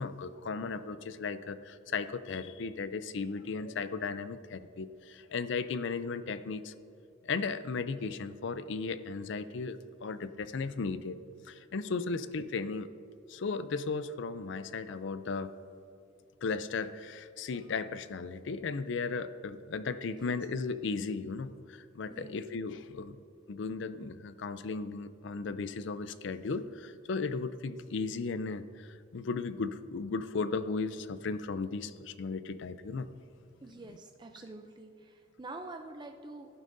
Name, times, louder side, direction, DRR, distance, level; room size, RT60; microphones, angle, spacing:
voice 1, 0.0-6.7 7.2-11.2 11.5-12.9 13.3-15.5 16.4-23.2 23.5-33.1, left 4 dB, 60° left, 13 dB, 0.4 m, -36 dB
voice 2, 33.6-36.5, right 2 dB, 20° right, 4 dB, 0.4 m, -46 dB
17.0 x 11.0 x 2.6 m, 2.6 s
head